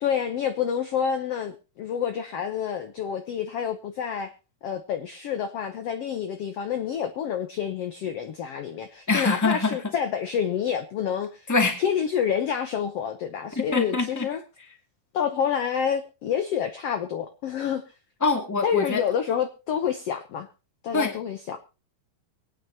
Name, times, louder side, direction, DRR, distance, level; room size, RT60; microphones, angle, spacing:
voice 1, 0.0-4.3 4.6-11.5 11.8-14.4 15.1-17.8 18.6-20.5 20.8-21.6, left 8 dB, 70° left, 7 dB, 1.4 m, -28 dB
voice 2, 9.1-9.8 11.5-11.8 13.5-14.3 18.2-19.0 20.9-21.2, left 3 dB, 5° left, 3 dB, 1.6 m, -24 dB
23.5 x 9.3 x 2.9 m, 0.31 s
omnidirectional pair, 4.1 m